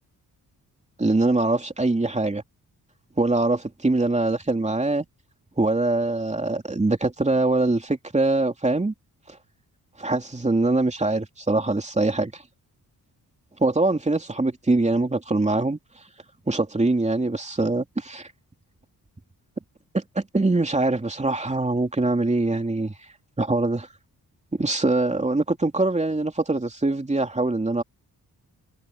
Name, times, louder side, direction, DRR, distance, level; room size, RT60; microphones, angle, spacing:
voice 1, 1.0-2.4 3.2-5.0 5.6-8.9 10.0-12.4 13.6-15.8 16.5-18.3 19.9-22.9 23.4-23.9 24.5-27.8, right 2 dB, 20° right, 2.9 m, -23 dB
cardioid pair, 95°, 37 cm